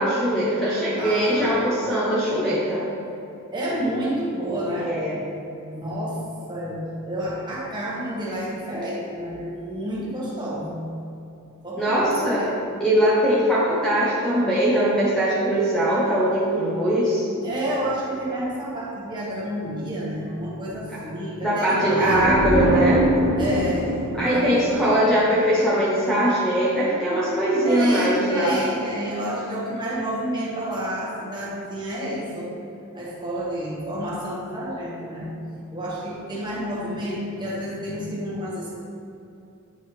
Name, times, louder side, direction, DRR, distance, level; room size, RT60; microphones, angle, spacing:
voice 1, 0.0-2.8 4.8-5.2 11.8-12.4 12.8-17.3 21.4-23.0 24.1-28.6, equal, 5° left, -9 dB, 0.8 m, -21 dB
voice 2, 1.0-2.1 3.5-5.0 5.7-10.8 11.6-12.7 17.4-22.3 23.4-24.0 24.3-24.9 27.6-32.6 32.9-35.3 35.7-38.7, right 1 dB, 20° right, -6 dB, 1.4 m, -30 dB
sound 1, 22.0-25.7, right 1 dB, 40° right, 1.1 m, -24 dB
9.0 x 4.6 x 3.2 m, 2.7 s
head